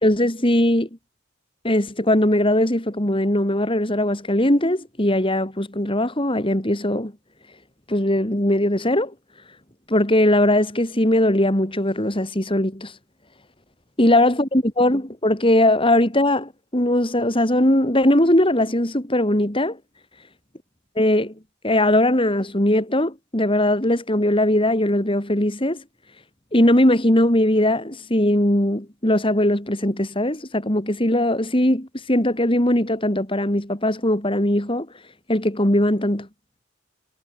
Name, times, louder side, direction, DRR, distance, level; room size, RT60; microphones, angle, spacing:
voice 1, 0.0-0.9 1.6-7.1 7.9-9.1 9.9-13.0 14.0-19.8 21.0-21.3 21.6-25.8 26.5-34.9 35.3-36.3, left 1 dB, 25° left, 3.0 m, -20 dB
head